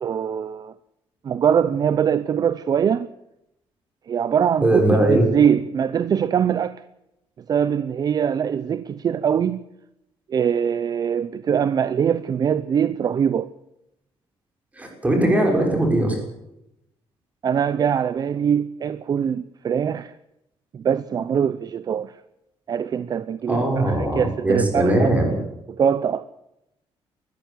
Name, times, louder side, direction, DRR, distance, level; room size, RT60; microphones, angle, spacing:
voice 1, 0.0-0.7 1.2-3.1 4.1-6.8 7.5-9.6 10.3-13.5 17.4-20.1 20.7-22.1 22.7-25.1 25.7-26.3, right 8 dB, 40° right, 0.7 m, -22 dB
voice 2, 4.6-5.3 14.8-16.2 23.5-25.3, right 1 dB, 15° right, 6.4 m, -20 dB
20.5 x 14.5 x 9.1 m
cardioid pair, 150°, 10 cm